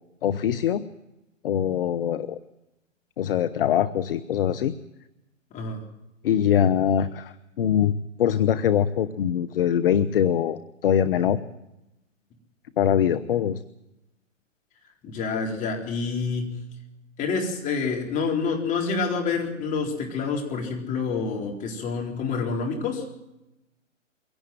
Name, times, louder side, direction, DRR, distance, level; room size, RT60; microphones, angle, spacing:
voice 1, 0.2-0.8 1.4-2.4 3.2-4.7 6.2-11.4 12.8-13.6, left 9 dB, 45° left, 12 dB, 1.0 m, -23 dB
voice 2, 15.0-16.6 17.2-23.0, left 4 dB, 20° left, 1 dB, 4.1 m, -27 dB
23.0 x 17.0 x 7.7 m, 0.94 s
figure-of-eight pair, 125°, 38 cm